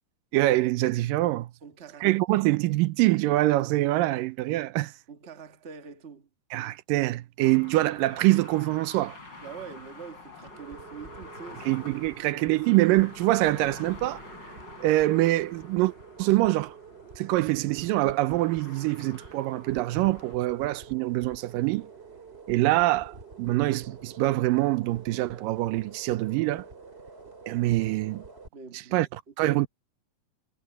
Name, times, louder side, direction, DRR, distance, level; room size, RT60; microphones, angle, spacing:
voice 1, 0.3-1.5 2.0-4.9 6.5-9.2 11.7-14.2 14.8-15.9 16.2-16.8 17.2-21.9 22.5-26.7 27.5-28.2 28.9-29.1 29.4-29.7, right 18 dB, 90° right, 2.4 m, -24 dB
voice 2, 1.6-2.1 5.1-6.3 9.4-11.8 12.1-12.4 28.5-29.6, right 6 dB, 35° right, 1.1 m, -44 dB
sound 1, 7.4-20.4, left 3 dB, 30° left, 7.3 m, -48 dB
sound 2, 8.8-28.5, right 5 dB, 20° right, 3.2 m, -48 dB
omnidirectional pair, 3.8 m